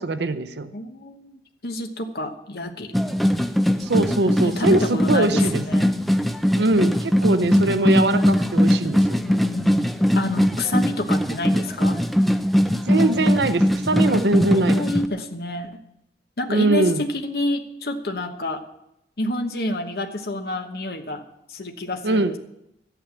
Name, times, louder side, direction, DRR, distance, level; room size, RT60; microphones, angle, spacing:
voice 1, 0.0-0.7 3.8-5.6 6.6-9.0 12.9-14.8 16.5-17.0 22.0-22.3, right 2 dB, 75° right, 12 dB, 0.7 m, -22 dB
voice 2, 0.7-2.9 4.4-6.0 9.2-12.0 14.5-15.8 16.4-18.6 19.2-21.2 21.5-22.4, left 1 dB, 60° left, 4 dB, 1.1 m, -29 dB
sound 1, 2.9-15.1, equal, ahead, 0.5 m, -20 dB
13.0 x 9.3 x 7.1 m, 0.82 s
head